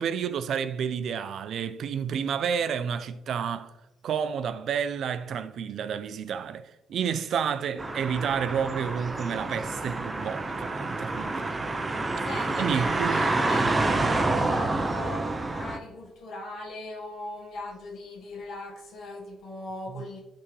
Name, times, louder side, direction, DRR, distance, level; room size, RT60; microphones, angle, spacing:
voice 1, 0.0-3.7 4.0-11.5 12.6-13.3 13.6-14.0 19.9-20.0, right 7 dB, 65° right, 0.5 m, -30 dB
sound 1, 7.8-15.8, right 2 dB, 25° right, 0.6 m, -28 dB
voice 2, 11.9-20.2, left 2 dB, 75° left, 1.3 m, -40 dB
10.0 x 3.5 x 3.2 m
cardioid pair, 90°, 0 cm